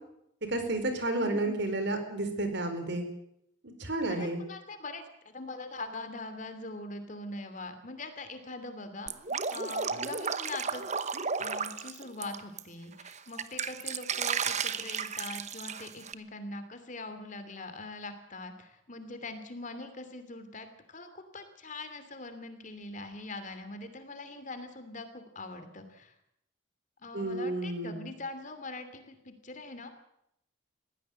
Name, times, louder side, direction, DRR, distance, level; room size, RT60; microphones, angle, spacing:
voice 1, 0.5-3.0 3.8-4.4 27.1-28.1, right 2 dB, 55° right, 8 dB, 4.4 m, -31 dB
voice 2, 1.2-1.6 4.1-9.1 9.5-10.8 11.4-26.1 27.0-29.9, left 2 dB, 40° left, 9 dB, 2.8 m, -42 dB
Drip, 9.1-12.6 13.0-16.1, right 6 dB, 35° right, 1.0 m, -34 dB
21.5 x 16.0 x 7.7 m, 0.76 s
head